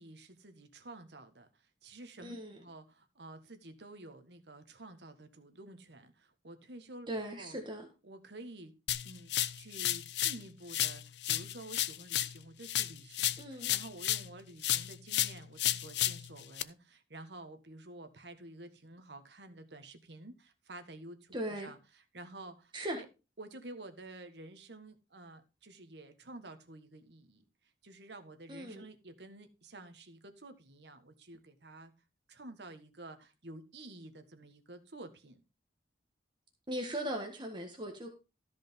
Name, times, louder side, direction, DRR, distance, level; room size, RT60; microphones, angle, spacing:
voice 1, 0.0-7.5 8.0-8.7 9.0-21.4 21.6-23.1 23.4-27.4 27.8-31.9 32.3-35.4, right 2 dB, 70° right, 1.5 m, -51 dB
voice 2, 2.2-2.6 7.1-7.9 13.4-13.7 21.3-21.7 22.7-23.0 28.5-28.8 36.7-38.1, right 1 dB, 25° right, 1.6 m, -38 dB
sound 1, 8.9-10.4 10.7-14.3 14.6-16.6, left 13 dB, 70° left, 0.6 m, -33 dB
13.5 x 5.2 x 5.3 m
head